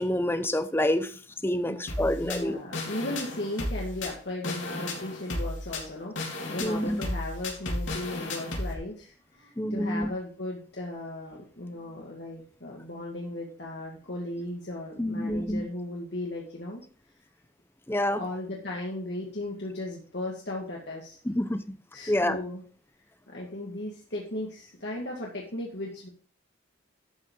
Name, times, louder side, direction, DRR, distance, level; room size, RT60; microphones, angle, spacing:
voice 1, 0.0-2.6 6.6-7.0 9.6-10.1 15.0-15.6 17.9-18.2 21.2-21.8 22.1-22.4, left 1 dB, 10° left, 11 dB, 0.7 m, -27 dB
voice 2, 1.7-16.8 18.2-21.2 21.9-22.6 23.3-26.1, left 1 dB, 60° left, -2 dB, 2.2 m, -36 dB
sound 1, 1.9-8.7, left 2 dB, 80° left, 3.6 m, -34 dB
12.5 x 8.0 x 3.8 m, 0.43 s
head